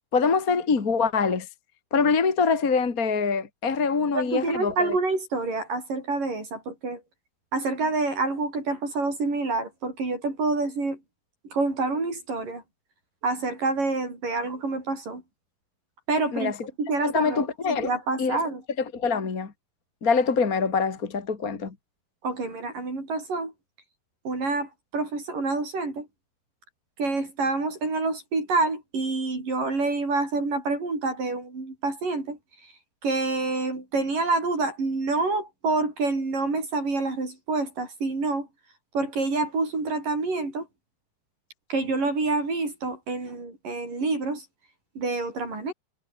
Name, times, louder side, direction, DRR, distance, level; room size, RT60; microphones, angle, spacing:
voice 1, 0.1-1.5 1.9-4.9 16.3-16.5 17.0-17.9 18.2-18.4 18.9-19.5 20.0-21.7, left 5 dB, 30° left, 1.6 m, -24 dB
voice 2, 4.1-7.0 7.5-11.0 11.5-12.6 13.2-15.2 16.1-16.5 16.8-18.6 22.2-23.5 24.3-26.1 27.0-32.4 33.0-38.5 38.9-40.7 41.7-44.5 45.0-45.7, right 3 dB, 50° right, 9.2 m, -27 dB
omnidirectional pair, 4.9 m